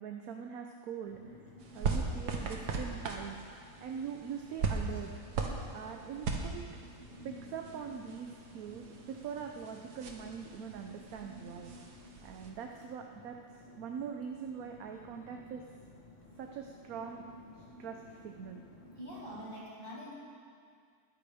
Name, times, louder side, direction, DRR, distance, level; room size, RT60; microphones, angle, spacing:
voice 1, 0.0-1.5 1.7-3.4 3.8-5.1 5.7-6.6 7.2-11.7 12.2-15.6 16.4-17.2 17.5-18.6, right 7 dB, 70° right, 3 dB, 1.1 m, -43 dB
sound 1, 1.1-19.6, left 1 dB, 30° left, 1.2 m, -54 dB
sound 2, 1.6-12.5, right 4 dB, 85° right, 1.7 m, -39 dB
voice 2, 18.9-20.1, equal, 35° right, -8 dB, 3.6 m, -45 dB
21.0 x 10.5 x 3.5 m, 2.1 s
omnidirectional pair, 1.7 m